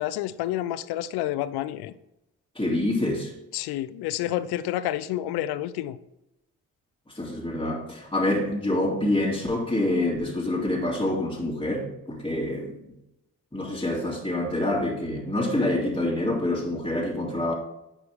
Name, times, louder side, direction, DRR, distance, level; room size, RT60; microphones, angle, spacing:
voice 1, 0.0-1.9 3.5-6.0, left 13 dB, 85° left, 0.5 m, -29 dB
voice 2, 2.6-3.3 7.2-12.8 13.5-17.5, left 1 dB, 15° left, 2.6 m, -26 dB
9.8 x 4.7 x 3.5 m
supercardioid pair, 45°, 38 cm